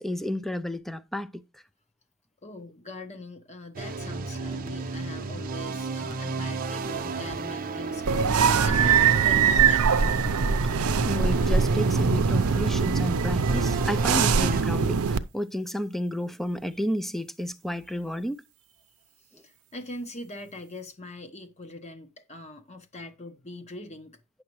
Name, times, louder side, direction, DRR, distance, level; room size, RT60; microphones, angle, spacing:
voice 1, 0.0-1.6 10.6-18.4 19.3-19.4, left 1 dB, ahead, 0.4 m, -32 dB
voice 2, 2.4-10.1 19.2-24.1, left 1 dB, 30° left, 1.0 m, -42 dB
sound 1, 3.7-14.6, right 3 dB, 40° right, 0.7 m, -33 dB
sound 2, 8.1-15.2, right 6 dB, 80° right, 0.6 m, -22 dB
9.5 x 6.6 x 3.1 m
head